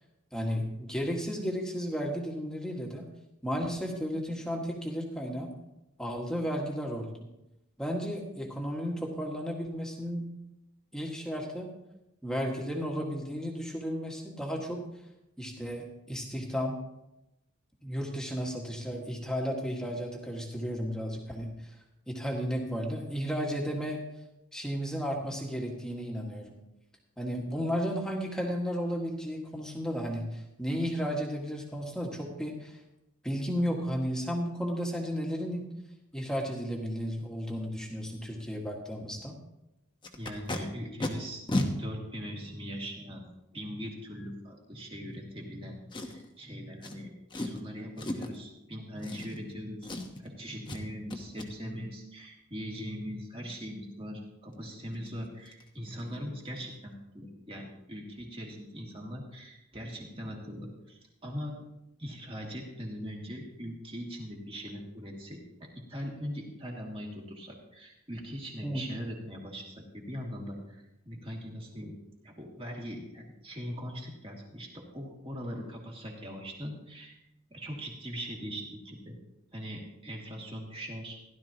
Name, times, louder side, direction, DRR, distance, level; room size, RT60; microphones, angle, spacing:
voice 1, 0.3-3.1 3.4-5.5 6.0-7.1 7.8-10.3 10.9-11.7 12.2-14.9 15.4-16.8 17.8-21.7 22.1-24.0 24.5-26.5 27.2-32.8 33.2-35.7 36.1-39.4 68.6-68.8, equal, 5° left, -1 dB, 1.8 m, -33 dB
Packing tape duct tape, 40.0-40.6 41.0-41.1 41.5-41.7 42.5-42.6 45.9-46.3 46.8-46.9 47.3-47.6 48.0-48.4 49.0-49.6 49.8-50.3 50.7-50.8 51.1-51.5 54.5-54.6 54.9-55.1 55.5-55.6 55.9-56.1 56.4-56.5, left 1 dB, 20° left, 1.1 m, -34 dB
voice 2, 40.2-41.4 41.8-43.2 43.5-47.1 47.4-49.9 50.2-61.6 62.0-71.9 72.2-77.2 77.5-79.2 79.5-81.2, equal, 25° right, -1 dB, 2.4 m, -41 dB
16.0 x 12.0 x 3.0 m, 0.89 s
head